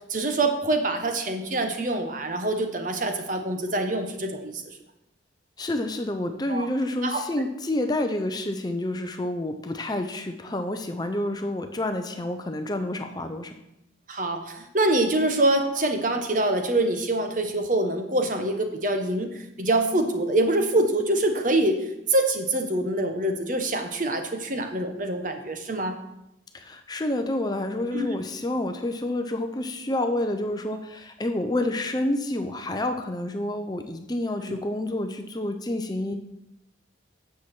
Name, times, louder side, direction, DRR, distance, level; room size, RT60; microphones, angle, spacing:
voice 1, 0.1-4.8 6.5-6.7 7.0-7.2 14.1-25.9 27.9-28.1 34.5-34.6, right 2 dB, 40° right, 6 dB, 1.1 m, -25 dB
voice 2, 5.6-13.6 26.5-36.1, left 1 dB, 20° left, 6 dB, 0.6 m, -29 dB
9.3 x 7.1 x 6.0 m, 0.87 s
head